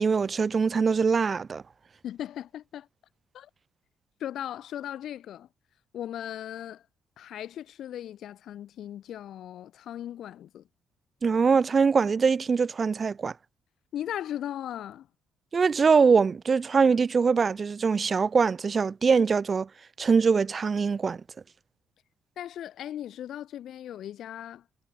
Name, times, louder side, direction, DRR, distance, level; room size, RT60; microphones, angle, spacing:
voice 1, 0.0-1.6 11.2-13.3 15.5-19.7 20.0-21.2, right 5 dB, 25° right, 4.2 m, -23 dB
voice 2, 2.0-2.9 3.3-3.5 4.2-5.5 5.9-6.8 7.2-10.7 13.9-15.1 22.4-24.6, left 11 dB, 55° left, 4.9 m, -37 dB
cardioid pair, 175°, 0 cm